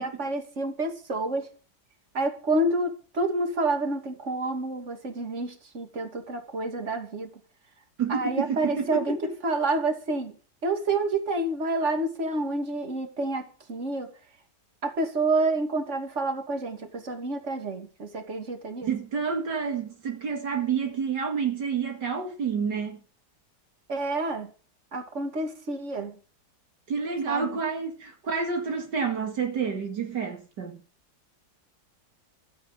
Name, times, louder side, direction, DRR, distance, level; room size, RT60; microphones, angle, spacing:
voice 1, 0.0-1.5 2.1-7.3 8.1-9.2 9.4-10.3 10.6-14.1 14.8-18.9 23.9-24.5 24.9-26.1 27.3-27.5, right 2 dB, 40° right, 2.9 m, -28 dB
voice 2, 8.0-9.3 18.8-23.0 26.9-30.8, right 6 dB, 70° right, 2.7 m, -29 dB
15.5 x 13.5 x 5.2 m
omnidirectional pair, 1.9 m